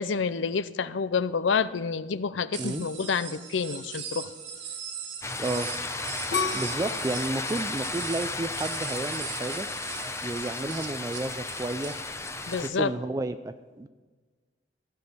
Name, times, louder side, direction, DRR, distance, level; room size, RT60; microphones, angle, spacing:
voice 1, 0.0-4.3 12.5-12.9, left 5 dB, 85° left, 16 dB, 0.5 m, -28 dB
sound 1, 2.5-12.0, right 7 dB, 80° right, 1.9 m, -40 dB
sound 2, 5.2-12.7, left 3 dB, 15° left, 0.7 m, -34 dB
voice 2, 5.4-5.7 6.5-9.7 10.2-12.0 12.5-13.9, right 2 dB, 20° right, 10 dB, 0.4 m, -32 dB
sound 3, 6.3-9.2 9.7-10.2, left 5 dB, 65° left, 1.7 m, -34 dB
15.0 x 6.2 x 8.2 m, 1.4 s
head